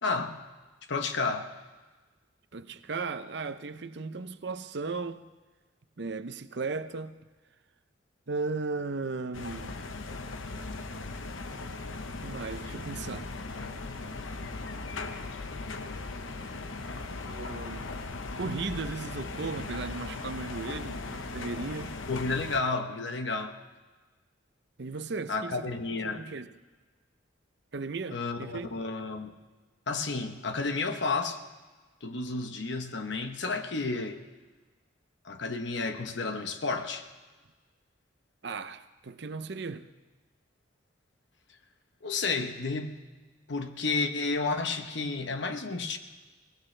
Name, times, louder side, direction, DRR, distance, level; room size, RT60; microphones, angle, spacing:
voice 1, 0.0-0.4 0.9-1.5 22.1-23.5 25.3-26.2 28.1-29.3 29.9-31.4 32.0-34.2 35.2-37.1 42.0-43.0 43.5-46.0, left 3 dB, 65° left, 1.0 m, -31 dB
voice 2, 2.5-5.3 6.0-7.2 8.3-9.8 12.2-13.3 17.2-21.9 24.8-25.8 26.0-26.5 27.7-28.7 38.4-39.9, right 4 dB, 60° right, 0.7 m, -36 dB
sound 1, 9.3-22.6, left 3 dB, 90° left, 1.0 m, -38 dB
22.5 x 19.0 x 3.3 m
head